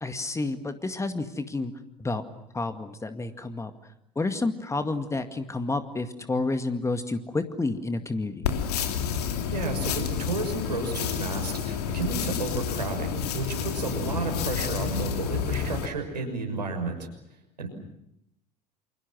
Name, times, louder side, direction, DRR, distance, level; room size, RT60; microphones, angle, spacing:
voice 1, 0.0-1.7 2.0-2.2 2.5-3.7 4.2-8.5, left 3 dB, 15° left, 8 dB, 2.1 m, -30 dB
sound 1, 8.4-15.9, left 7 dB, 65° left, 2.9 m, -30 dB
voice 2, 9.5-17.1 17.6-17.7, right 3 dB, 80° right, 3 dB, 6.2 m, -32 dB
29.0 x 27.5 x 6.2 m, 0.80 s
figure-of-eight pair, 70°, 21 cm